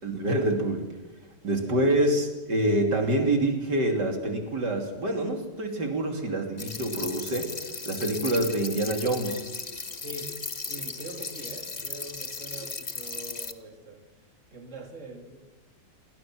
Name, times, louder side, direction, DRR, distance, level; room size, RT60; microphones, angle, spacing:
voice 1, 0.0-0.8 1.4-7.5 7.9-9.4, right 1 dB, 70° right, 3 dB, 3.6 m, -26 dB
voice 2, 1.6-1.9 9.9-10.3 10.6-14.0 14.5-15.4, right 2 dB, 45° right, 3 dB, 3.3 m, -43 dB
sound 1, 6.6-13.5, left 4 dB, 25° left, 1.2 m, -36 dB
29.0 x 21.5 x 6.2 m, 1.1 s
omnidirectional pair, 1.9 m